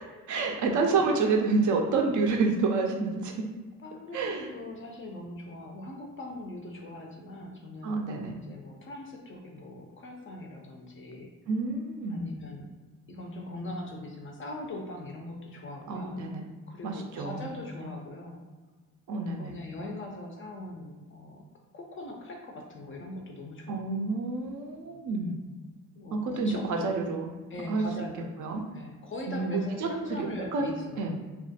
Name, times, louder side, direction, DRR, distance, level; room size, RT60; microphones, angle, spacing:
voice 1, 0.0-3.5 4.1-4.5 7.8-8.4 11.5-12.3 15.9-16.5 16.8-17.4 19.1-19.6 23.7-25.4 26.1-27.3 27.7-27.8 28.4-28.6 29.3-30.7 31.0-31.2, right 3 dB, 45° right, 2 dB, 0.4 m, -29 dB
voice 2, 3.8-8.1 8.4-11.3 12.1-12.7 13.1-16.3 16.7-18.4 19.4-21.4 21.7-23.8 26.0-27.1 27.5-28.3 28.7-31.2, left 2 dB, 30° left, 1 dB, 0.4 m, -41 dB
2.3 x 2.1 x 2.7 m, 1.3 s
hypercardioid pair, 45°, 44 cm